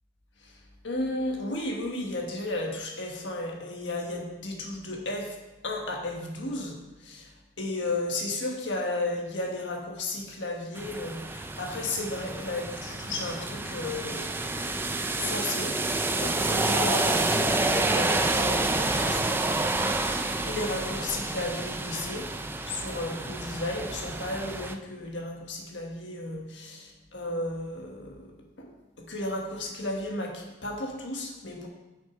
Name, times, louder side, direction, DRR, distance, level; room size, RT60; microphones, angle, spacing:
voice 1, 0.8-5.4 5.6-14.3 15.1-19.3 20.4-22.3 22.6-28.7 29.0-31.7, left 2 dB, 80° left, 0 dB, 1.4 m, -34 dB
sound 1, 10.8-24.7, right 2 dB, 10° right, 0.3 m, -29 dB
sound 2, 12.0-17.0, equal, 40° left, 2.4 m, -50 dB
6.4 x 6.3 x 5.0 m, 1.1 s
head